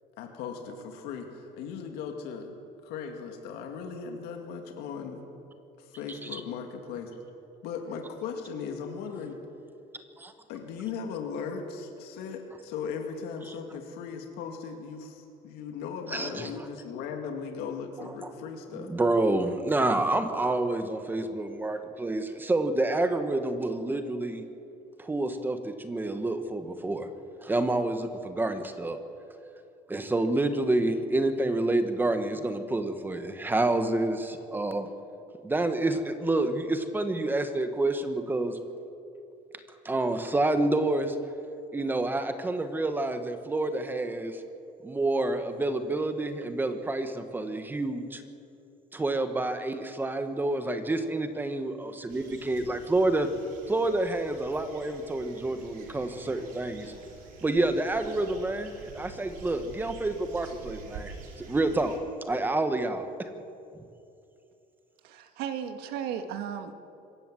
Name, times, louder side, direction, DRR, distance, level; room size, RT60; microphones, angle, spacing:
voice 1, 0.2-2.5 2.8-5.3 5.8-7.2 7.6-9.4 10.5-18.9, left 6 dB, 80° left, 3 dB, 2.3 m, -38 dB
voice 2, 6.1-6.4 10.2-10.3 16.1-16.5 18.7-24.4 25.0-27.1 27.4-29.0 29.9-34.9 35.4-38.6 39.8-41.2 41.7-44.4 44.8-48.2 48.9-53.3 53.7-56.9 57.4-61.9 62.3-63.0, right 2 dB, 10° right, 8 dB, 1.1 m, -28 dB
sound 1, 52.1-62.0, right 5 dB, 60° right, 4.2 m, -47 dB
voice 3, 65.0-66.7, right 8 dB, 80° right, 8 dB, 1.7 m, -35 dB
25.5 x 15.0 x 7.6 m, 2.7 s
cardioid pair, 160°, 16 cm